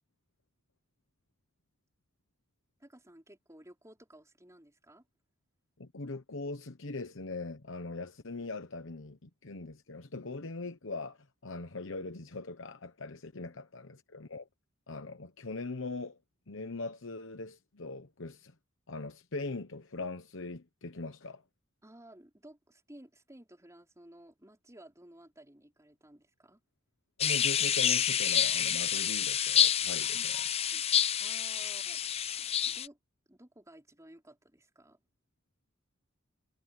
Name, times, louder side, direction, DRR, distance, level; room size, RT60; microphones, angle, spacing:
voice 1, 2.8-5.0 21.8-26.6 30.1-30.3 30.7-30.8 31.2-32.0 32.4-33.0 33.3-35.0, right 1 dB, 15° right, 4.6 m, -55 dB
voice 2, 5.8-14.5 14.9-16.2 16.5-18.5 18.9-21.4 27.2-30.3, left 3 dB, 65° left, 1.1 m, -41 dB
sound 1, 27.2-32.9, left 9 dB, 30° left, 0.5 m, -28 dB
head